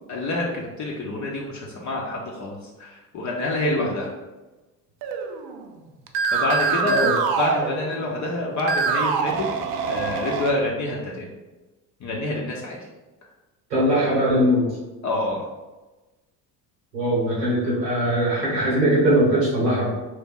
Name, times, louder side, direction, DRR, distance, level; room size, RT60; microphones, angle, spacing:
voice 1, 0.1-4.1 6.3-6.9 7.4-9.5 9.9-11.3 12.0-12.8 15.0-15.4, left 2 dB, 35° left, -2 dB, 0.7 m, -27 dB
sound 1, 5.0-5.7 6.1-8.2 8.6-10.5, right 5 dB, 50° right, 0.5 m, -25 dB
voice 2, 6.8-7.1 13.7-14.7 16.9-19.9, equal, 85° right, -7 dB, 1.1 m, -21 dB
2.9 x 2.7 x 3.6 m, 1.1 s
figure-of-eight pair, 60°, 49 cm